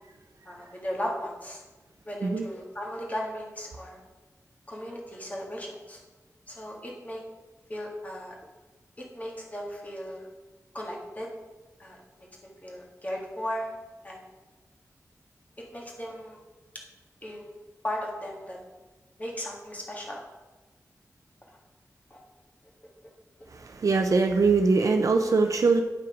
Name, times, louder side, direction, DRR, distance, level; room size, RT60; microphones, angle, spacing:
voice 1, 0.5-1.6 2.1-4.0 4.7-6.0 6.5-7.2 7.7-8.4 9.0-10.3 10.7-11.3 11.8-13.7 14.0-14.2 15.6-16.4 17.2-17.5 17.8-18.6 19.2-20.2 22.1-22.2, equal, 25° left, -2 dB, 1.8 m, -36 dB
voice 2, 23.5-25.8, right 4 dB, 65° right, 4 dB, 0.5 m, -22 dB
9.1 x 5.7 x 5.1 m, 1.2 s
wide cardioid pair, 110°, 6 cm